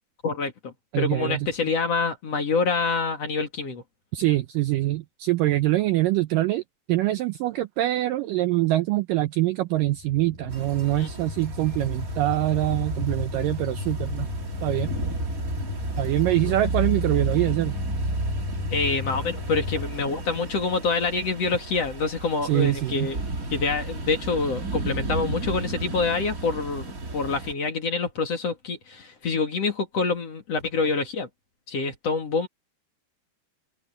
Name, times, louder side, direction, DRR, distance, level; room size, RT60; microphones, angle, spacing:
voice 1, 0.2-3.8 11.0-11.1 16.4-16.5 18.7-23.2 23.5-31.3 31.7-32.5, left 4 dB, 45° left, 2.8 m, -26 dB
voice 2, 0.9-1.5 4.1-6.6 6.9-14.3 14.6-14.9 16.0-17.8 22.4-23.1, right 16 dB, 85° right, 1.9 m, -24 dB
sound 1, 9.8-19.9, left 6 dB, 70° left, 4.7 m, -35 dB
sound 2, 10.5-27.5, right 2 dB, 30° right, 1.8 m, -32 dB
omnidirectional pair, 4.8 m